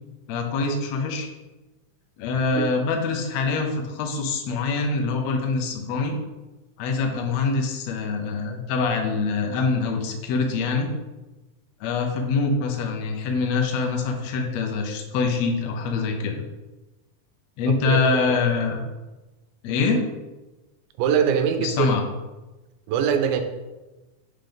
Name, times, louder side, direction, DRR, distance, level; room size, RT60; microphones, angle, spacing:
voice 1, 0.3-1.3 2.2-6.1 6.8-10.9 11.8-16.4 17.6-18.8 19.6-20.0 21.6-22.0, left 4 dB, 85° left, 2 dB, 1.5 m, -24 dB
voice 2, 17.7-18.0 18.3-18.4 21.0-21.9 22.9-23.4, right 7 dB, 85° right, 7 dB, 2.4 m, -23 dB
5.7 x 5.1 x 3.8 m, 1.1 s
omnidirectional pair, 4.1 m